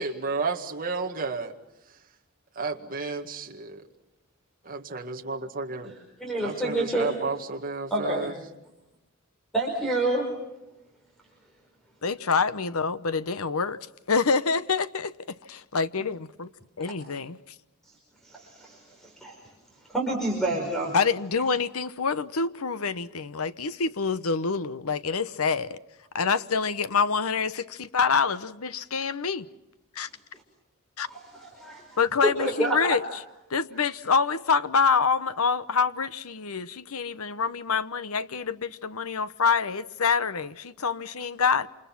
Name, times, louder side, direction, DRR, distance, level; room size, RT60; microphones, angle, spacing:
voice 1, 0.0-1.5 2.6-3.8 4.7-5.9 6.4-8.3, right 4 dB, 40° right, 1.9 m, -32 dB
voice 2, 5.8-7.2 7.9-8.3 9.5-10.4 18.2-19.4 19.9-21.0 31.1-32.9, right 1 dB, ahead, 5.0 m, -28 dB
voice 3, 12.0-13.8 14.1-15.1 15.5-16.5 16.8-17.4 20.9-25.8 26.1-29.5 30.0-30.1 31.0-31.1 32.0-33.0 33.5-41.7, left 5 dB, 75° left, 0.9 m, -26 dB
28.0 x 27.5 x 6.0 m
head